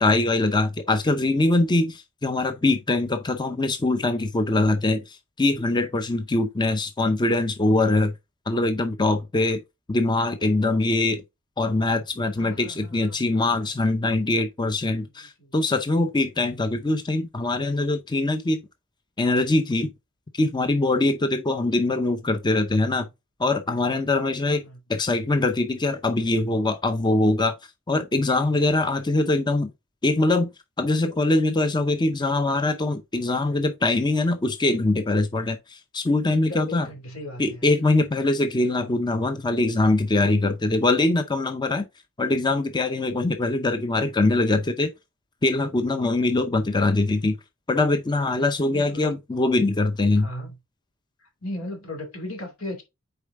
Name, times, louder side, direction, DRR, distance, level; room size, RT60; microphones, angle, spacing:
voice 1, 0.0-8.1 8.5-9.6 9.9-11.2 11.6-18.6 19.2-19.9 20.3-23.1 23.4-24.6 24.9-27.5 27.9-29.7 30.0-30.5 30.8-36.9 37.4-41.9 42.2-44.9 45.4-47.4 47.7-50.3, left 2 dB, 20° left, 0.6 m, -23 dB
voice 2, 12.4-13.7 15.0-15.6 24.6-24.8 28.4-28.6 36.3-37.7 48.6-49.1 50.2-50.6 51.2-52.8, left 1 dB, 80° left, 2.7 m, -38 dB
6.7 x 4.6 x 3.6 m
head